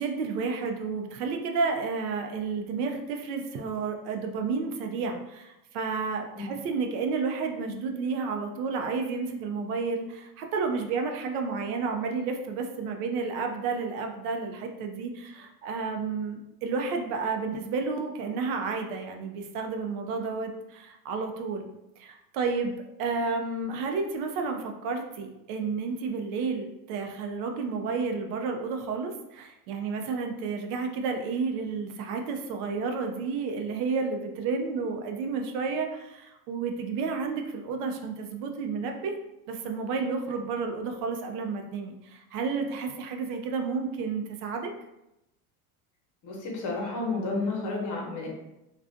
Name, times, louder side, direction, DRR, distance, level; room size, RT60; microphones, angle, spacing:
voice 1, 0.0-21.7 22.0-39.1 39.5-44.7, right 4 dB, 80° right, 4 dB, 0.6 m, -31 dB
voice 2, 46.2-48.3, left 3 dB, 45° left, -1 dB, 0.9 m, -31 dB
2.4 x 2.3 x 2.5 m, 0.91 s
supercardioid pair, 110°, 45 cm